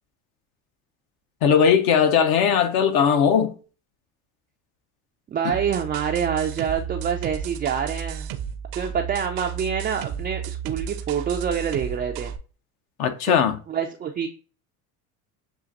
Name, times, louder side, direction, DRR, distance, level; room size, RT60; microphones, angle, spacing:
voice 1, 1.4-3.6 5.4-5.5 13.0-13.6, left 7 dB, 55° left, 0.7 m, -19 dB
voice 2, 5.3-8.3 8.7-12.3 13.3-13.4 13.7-14.3, right 7 dB, 20° right, 0.3 m, -26 dB
sound 1, 5.5-12.4, right 9 dB, 65° right, 0.6 m, -33 dB
7.0 x 2.5 x 2.5 m
hypercardioid pair, 75°, 45 cm